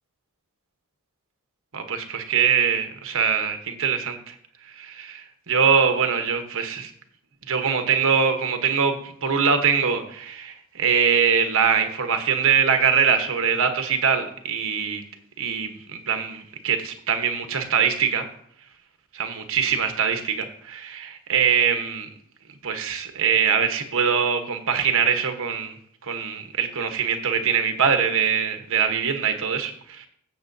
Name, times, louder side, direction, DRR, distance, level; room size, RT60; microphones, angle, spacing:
voice 1, 1.7-4.3 4.7-6.9 7.5-15.0 15.4-18.2 19.1-22.1 22.6-25.7 26.0-30.1, right 6 dB, 65° right, 7 dB, 1.1 m, -23 dB
15.0 x 6.7 x 2.7 m, 0.66 s
head